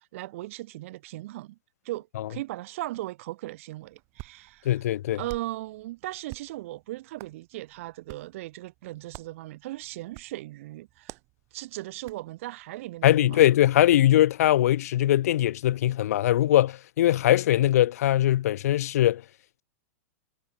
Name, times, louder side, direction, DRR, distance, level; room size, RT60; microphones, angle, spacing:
voice 1, 0.1-1.6 1.8-4.8 5.1-11.2 11.5-13.4, right 17 dB, 55° right, 6.1 m, -38 dB
Hands, 3.8-14.2, right 26 dB, 35° right, 5.2 m, -51 dB
voice 2, 4.7-5.2 13.0-19.2, left 13 dB, 70° left, 0.4 m, -21 dB
hypercardioid pair, 145°, 9 cm